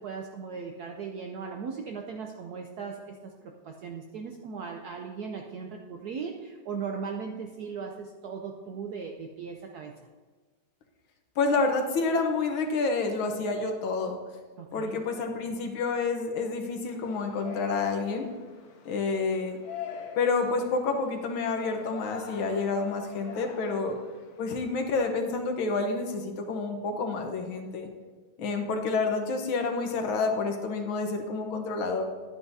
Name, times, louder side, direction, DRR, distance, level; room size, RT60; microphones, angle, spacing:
voice 1, 0.0-9.9 14.6-15.0, right 5 dB, 80° right, 2 dB, 0.9 m, -38 dB
voice 2, 11.4-14.2 14.7-18.3 18.8-19.6 20.2-23.9 24.4-27.9 28.4-32.0, left 4 dB, 70° left, 4 dB, 1.8 m, -29 dB
Yell, 16.9-24.6, left 6 dB, 55° left, 1.2 m, -44 dB
11.0 x 9.2 x 2.7 m, 1.4 s
omnidirectional pair, 2.3 m